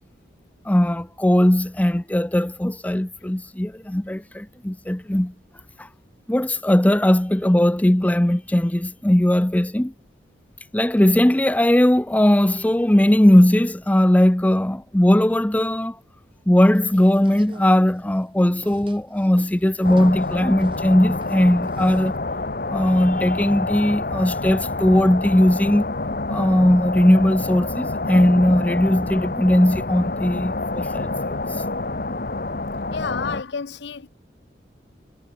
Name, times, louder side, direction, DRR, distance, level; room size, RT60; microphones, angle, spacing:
voice 1, 0.7-5.3 5.8-5.9 6.3-9.9 10.7-16.0 16.5-22.1 22.7-25.9 26.3-31.4, left 1 dB, 10° left, 0.5 m, -18 dB
sound 1, 16.8-22.2, right 1 dB, 30° right, 7.2 m, -48 dB
sound 2, 19.8-33.4, left 2 dB, 50° left, 1.4 m, -27 dB
voice 2, 32.9-34.1, left 5 dB, 70° left, 0.6 m, -30 dB
head